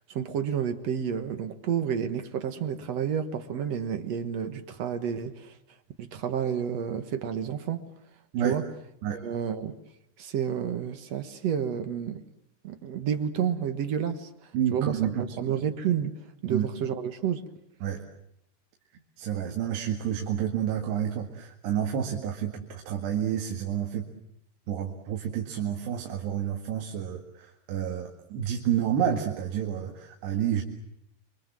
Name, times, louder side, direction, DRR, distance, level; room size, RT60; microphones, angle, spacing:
voice 1, 0.1-5.6 6.0-7.8 8.4-8.6 9.1-9.8 10.2-12.2 12.6-17.4, right 8 dB, 60° right, 1.9 m, -30 dB
voice 2, 14.5-15.3 16.5-16.7 17.8-18.0 19.2-24.1 24.7-30.6, right 9 dB, 85° right, 4.1 m, -29 dB
29.5 x 24.0 x 7.6 m
omnidirectional pair, 4.7 m